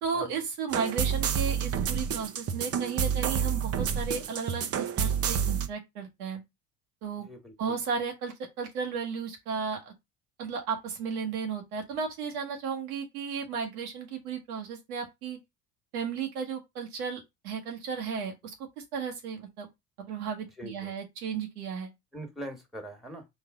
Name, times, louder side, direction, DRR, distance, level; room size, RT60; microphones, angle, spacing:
voice 1, 0.0-6.4 7.0-7.3 7.6-9.9 10.4-15.4 15.9-18.5 18.9-19.7 20.0-21.9, right 6 dB, 85° right, 1.2 m, -34 dB
sound 1, 0.7-5.7, right 7 dB, 35° right, 0.6 m, -29 dB
voice 2, 7.2-7.8 20.6-20.9 22.1-23.3, right 1 dB, ahead, 1.4 m, -42 dB
3.8 x 2.7 x 3.6 m
hypercardioid pair, 70°, 43 cm